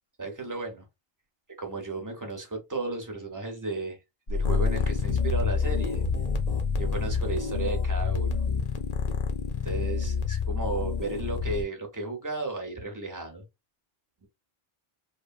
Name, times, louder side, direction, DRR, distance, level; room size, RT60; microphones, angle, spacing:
voice 1, 0.2-0.8 1.6-4.0 4.3-6.0 6.8-8.4 9.6-13.4, right 3 dB, 20° right, 0.8 m, -34 dB
sound 1, 4.3-11.6, left 5 dB, 45° left, 0.7 m, -27 dB
3.1 x 2.0 x 2.5 m
omnidirectional pair, 1.0 m